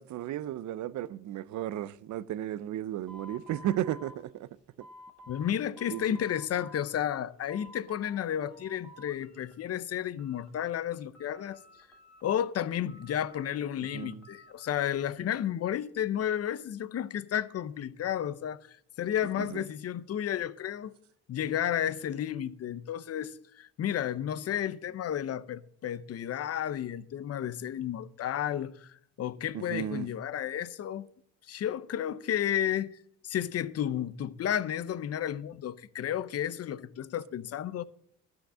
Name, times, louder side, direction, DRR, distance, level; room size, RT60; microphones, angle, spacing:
voice 1, 0.0-4.5 5.9-6.0 13.9-14.2 19.4-19.6 29.5-30.1, right 12 dB, 70° right, 0.6 m, -34 dB
sound 1, 3.1-5.5 5.8-6.9 7.2-8.2 8.5-9.5 9.9-10.9 11.1-12.4 12.9-15.0, left 1 dB, ahead, 2.4 m, -52 dB
voice 2, 5.3-11.6 12.2-21.0 21.3-31.1 31.5-33.0 33.2-37.8, left 10 dB, 55° left, 0.7 m, -32 dB
12.5 x 5.8 x 7.3 m
cardioid pair, 90°, 30 cm